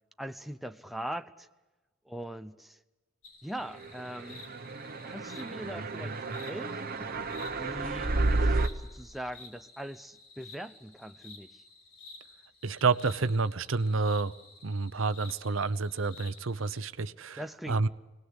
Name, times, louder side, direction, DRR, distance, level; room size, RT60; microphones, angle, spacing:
voice 1, 0.2-1.5 2.1-2.8 3.4-4.4 5.0-7.1 7.5-8.6 8.9-11.6 17.4-17.9, equal, ahead, 0.7 m, -41 dB
sound 1, 3.2-16.8, left 3 dB, 90° left, 5.2 m, -53 dB
sound 2, 4.2-8.7, right 2 dB, 45° right, 1.2 m, -31 dB
voice 2, 12.6-14.3 14.6-17.4 17.7-17.9, right 4 dB, 70° right, 0.8 m, -29 dB
25.5 x 19.0 x 8.1 m
head